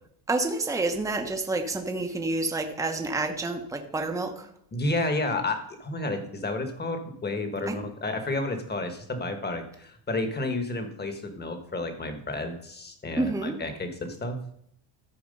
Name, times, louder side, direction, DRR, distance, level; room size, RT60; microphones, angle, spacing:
voice 1, 0.3-4.5 7.7-7.8 13.2-13.6, right 2 dB, 5° right, 4 dB, 0.9 m, -29 dB
voice 2, 4.7-14.4, left 2 dB, 20° left, 7 dB, 1.4 m, -31 dB
13.0 x 4.7 x 5.4 m, 0.71 s
cardioid pair, 115°, 48 cm